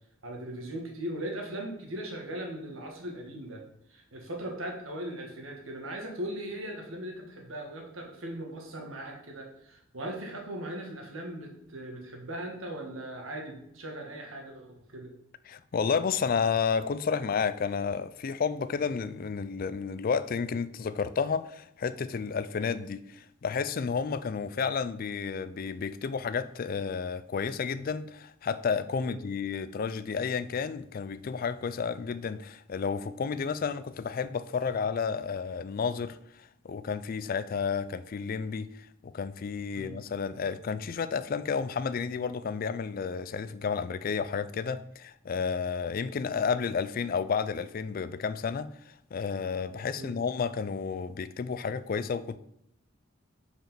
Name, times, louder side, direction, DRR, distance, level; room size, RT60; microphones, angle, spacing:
voice 1, 0.2-3.6 3.9-15.1 29.0-29.2 39.7-40.0 50.0-50.2, right 1 dB, 85° right, 1.8 m, -39 dB
voice 2, 15.5-52.4, left 5 dB, 45° left, 0.4 m, -31 dB
5.2 x 5.0 x 5.7 m
head